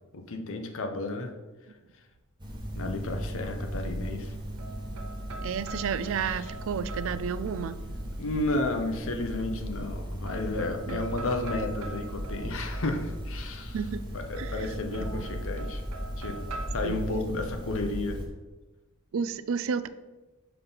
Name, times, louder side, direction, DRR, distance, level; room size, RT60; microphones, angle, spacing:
voice 1, 0.1-1.3 2.7-4.3 6.2-6.4 8.2-13.8 14.1-15.8 16.2-18.2, left 2 dB, 60° left, 5 dB, 0.7 m, -32 dB
sound 1, 2.4-18.3, equal, 20° right, 1.1 m, -37 dB
sound 2, 4.2-8.1 9.3-10.0 10.3-13.5 14.3-16.7, right 3 dB, 85° right, 0.8 m, -44 dB
voice 2, 5.4-7.8 10.9-11.2 13.7-14.0 14.4-15.2 16.8-17.0 19.1-19.9, right 6 dB, 65° right, 13 dB, 0.4 m, -32 dB
5.7 x 5.4 x 4.0 m, 1.2 s
head